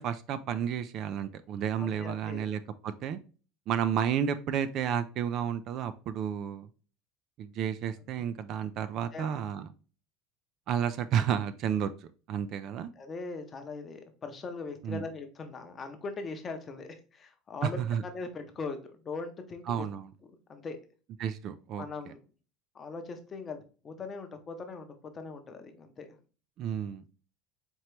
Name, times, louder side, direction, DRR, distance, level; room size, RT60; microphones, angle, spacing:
voice 1, 0.0-3.2 3.7-6.7 7.4-9.7 10.7-12.9 14.8-15.1 17.6-18.0 19.7-20.1 21.2-21.8 26.6-27.0, right 8 dB, 40° right, 12 dB, 0.3 m, -31 dB
voice 2, 1.8-2.5 9.1-9.4 13.0-19.9 20.5-20.8 21.8-22.2 22.7-26.2, left 4 dB, 20° left, 6 dB, 0.7 m, -40 dB
4.4 x 2.9 x 3.1 m, 0.37 s
cardioid pair, 160°, 0 cm